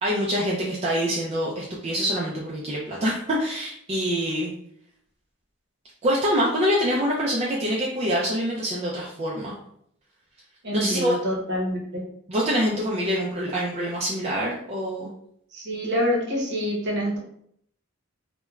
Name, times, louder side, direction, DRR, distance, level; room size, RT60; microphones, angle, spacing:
voice 1, 0.0-4.5 6.0-9.6 10.7-11.1 12.3-15.1, equal, 30° right, -4 dB, 0.4 m, -25 dB
voice 2, 10.6-12.0 15.5-17.2, equal, 55° right, -1 dB, 0.8 m, -26 dB
2.3 x 2.1 x 3.0 m, 0.68 s
head